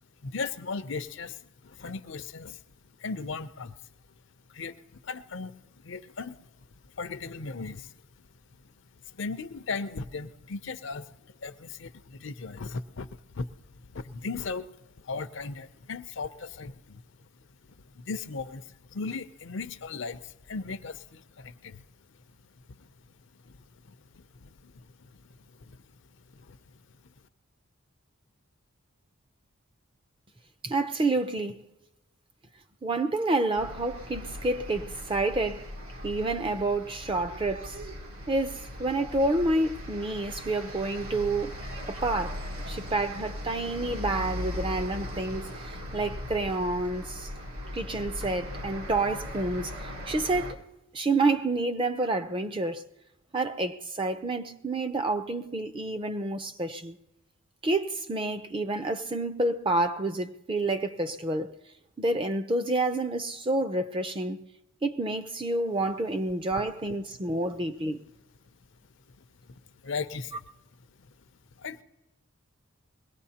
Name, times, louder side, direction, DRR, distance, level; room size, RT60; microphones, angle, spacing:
voice 1, 0.2-2.6 3.0-3.7 4.5-4.8 5.0-5.5 5.8-6.4 7.0-7.9 9.1-13.1 13.3-13.5 13.9-14.7 15.0-17.0 17.9-21.8 23.5-23.6 24.1-24.9 25.6-25.8 26.3-26.6 69.8-70.4 71.6-71.8, left 4 dB, 60° left, 0.5 m, -37 dB
voice 2, 30.6-31.6 32.8-35.7 36.0-37.8 38.3-41.6 41.9-47.3 47.7-50.6 50.9-52.8 53.3-57.0 57.6-61.5 62.0-64.5 64.8-68.0, right 2 dB, 25° right, 0.4 m, -29 dB
sound 1, 33.6-50.5, left 1 dB, 85° right, 1.6 m, -39 dB
22.5 x 18.0 x 2.8 m
head